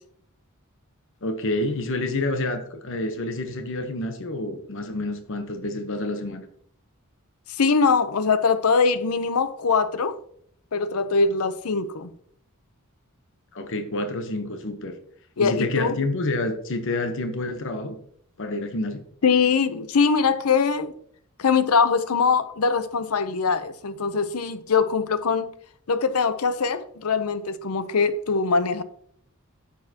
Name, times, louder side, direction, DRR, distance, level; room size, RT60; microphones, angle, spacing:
voice 1, 1.2-6.4 13.5-15.0 15.4-18.0 18.4-19.0, left 2 dB, 60° left, 1.0 m, -28 dB
voice 2, 7.5-10.2 10.7-12.1 15.4-16.0 19.2-20.9 21.4-25.5 25.9-28.8, left 5 dB, 85° left, 0.7 m, -22 dB
10.5 x 7.2 x 2.9 m
head